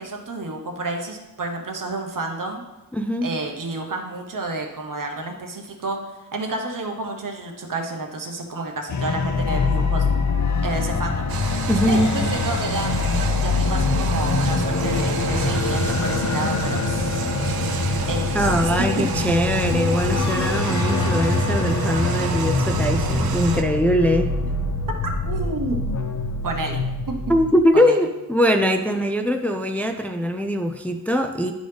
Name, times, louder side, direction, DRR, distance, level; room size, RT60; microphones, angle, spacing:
voice 1, 0.0-2.6 3.2-10.0 10.6-11.3 11.9-12.9 13.4-17.3 18.1-18.5 25.2-25.8 26.4-27.1 27.7-28.0, right 2 dB, 60° right, 2 dB, 1.1 m, -30 dB
voice 2, 2.9-3.3 11.7-12.3 18.3-24.3 27.3-31.5, equal, 5° left, 6 dB, 0.4 m, -21 dB
sound 1, 8.9-27.6, left 4 dB, 55° left, 0.6 m, -24 dB
sound 2, 9.5-20.2, right 2 dB, 70° left, 1.2 m, -40 dB
sound 3, 11.3-23.6, right 6 dB, 85° right, 0.6 m, -28 dB
11.5 x 3.9 x 3.4 m, 1.1 s
wide cardioid pair, 100°, 35 cm